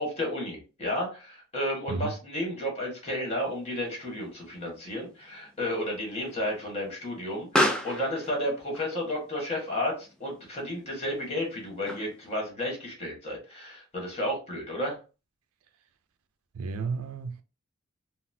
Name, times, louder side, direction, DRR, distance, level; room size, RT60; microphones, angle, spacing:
voice 1, 0.0-15.0, left 1 dB, 30° left, 1.4 m, -32 dB
Explosion, 3.3-12.4, left 1 dB, 5° left, 0.3 m, -35 dB
voice 2, 16.5-17.4, right 4 dB, 75° right, 0.4 m, -32 dB
3.9 x 2.0 x 2.7 m
head